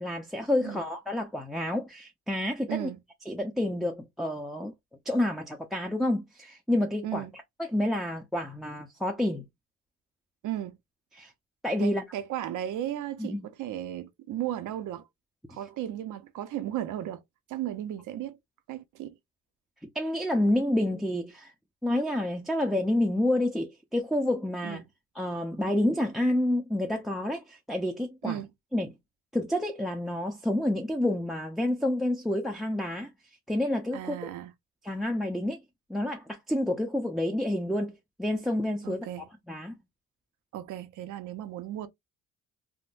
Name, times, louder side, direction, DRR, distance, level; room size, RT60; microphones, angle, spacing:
voice 1, 0.0-2.9 3.3-4.7 5.1-7.3 7.7-9.4 11.1-11.3 11.6-12.0 13.2-13.5 19.9-21.5 21.8-24.8 25.2-28.4 28.7-28.9 29.3-33.1 33.5-34.3 34.8-35.6 35.9-39.1 39.5-39.8, left 1 dB, ahead, 0.5 m, -29 dB
voice 2, 10.4-10.8 11.8-15.0 15.5-17.2 17.5-18.4 18.7-19.2 24.6-24.8 28.2-28.5 33.9-34.5 38.8-39.3 40.5-41.9, right 12 dB, 80° right, 0.6 m, -35 dB
3.6 x 2.1 x 2.4 m
cardioid pair, 90°, 30 cm